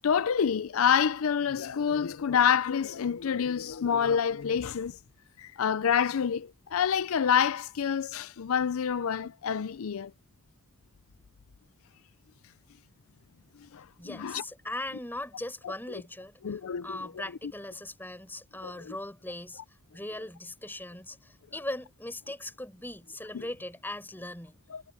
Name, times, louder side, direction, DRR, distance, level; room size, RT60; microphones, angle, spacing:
voice 1, 0.0-5.0 5.4-10.1 13.7-14.4 15.6-15.7 16.4-17.1 18.6-18.9 23.3-23.4 24.7-24.8, left 7 dB, 80° left, 0.5 m, -27 dB
voice 2, 14.0-19.6 19.9-24.6, left 1 dB, 10° left, 5.0 m, -39 dB
head